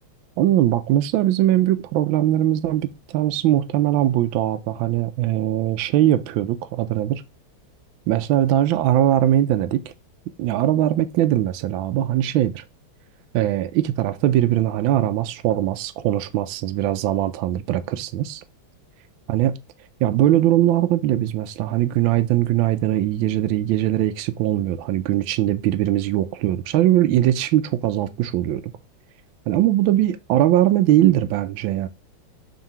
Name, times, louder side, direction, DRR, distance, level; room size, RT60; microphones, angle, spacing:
voice 1, 0.4-7.2 8.1-9.8 10.4-12.6 13.3-18.4 19.3-19.6 20.0-28.6 29.5-31.9, right 13 dB, 80° right, 1.3 m, -20 dB
6.5 x 3.7 x 5.8 m
omnidirectional pair, 2.2 m